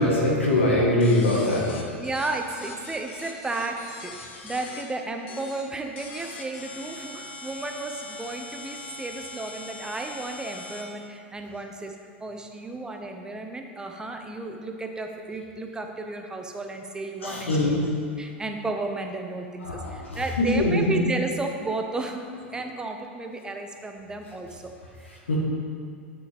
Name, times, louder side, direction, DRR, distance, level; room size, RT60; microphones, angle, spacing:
voice 1, 0.0-1.7 17.2-17.9 19.6-21.0 25.0-25.4, left 1 dB, 90° left, -3 dB, 1.5 m, -23 dB
sound 1, 1.0-4.8 5.3-5.6 6.0-10.8, left 3 dB, 70° left, 1.1 m, -41 dB
voice 2, 2.0-17.9 18.2-22.2 22.5-25.2, right 2 dB, 10° right, 4 dB, 0.7 m, -33 dB
7.1 x 5.8 x 3.5 m, 2.3 s
hypercardioid pair, 100°, 6 cm